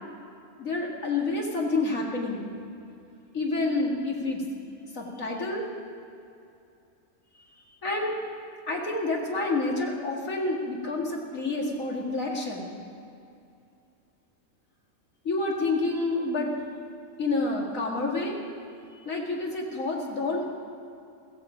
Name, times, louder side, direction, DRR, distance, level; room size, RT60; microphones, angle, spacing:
voice 1, 0.6-2.5 3.3-4.4 4.9-5.6 7.8-8.2 8.7-12.7 15.2-16.5 17.2-18.4 18.9-20.5, left 2 dB, 75° left, -1 dB, 2.6 m, -28 dB
15.5 x 15.0 x 5.2 m, 2.5 s
omnidirectional pair, 1.4 m